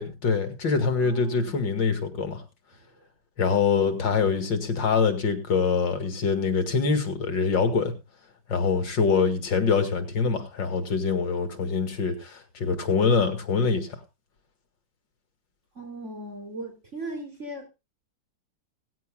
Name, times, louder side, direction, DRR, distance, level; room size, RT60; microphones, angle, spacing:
voice 1, 0.0-2.4 3.4-7.9 8.5-13.9, left 5 dB, 75° left, 7 dB, 2.7 m, -24 dB
voice 2, 1.0-1.6 15.7-17.7, right 1 dB, 35° right, 1 dB, 4.9 m, -38 dB
18.0 x 15.5 x 2.3 m, 0.27 s
omnidirectional pair, 2.0 m